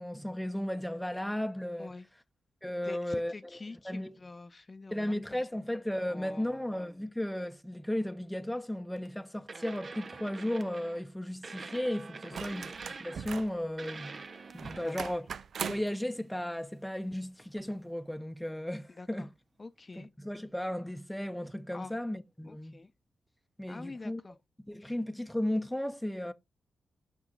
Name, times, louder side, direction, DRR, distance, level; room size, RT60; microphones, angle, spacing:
voice 1, 0.0-1.9 2.6-3.3 3.8-4.1 4.9-12.7 13.0-14.2 14.5-15.3 15.6-19.3 20.0-22.8 23.6-24.2 24.7-26.3, left 1 dB, 5° left, 0.8 m, -35 dB
voice 2, 2.8-5.4 6.1-6.6 12.3-12.6 14.7-15.1 18.9-19.3 19.6-20.1 21.7-21.9 22.4-22.9 23.7-24.4 24.8-25.0, left 3 dB, 35° left, 0.7 m, -46 dB
sound 1, 8.9-9.1 9.5-11.0 11.4-13.5 13.8-15.1 17.4-17.5, right 4 dB, 50° right, 0.8 m, -45 dB
sound 2, 12.3-13.6 14.6-16.0 17.6-17.7, right 6 dB, 65° right, 0.4 m, -40 dB
6.0 x 5.5 x 3.9 m
supercardioid pair, 45°, 0 cm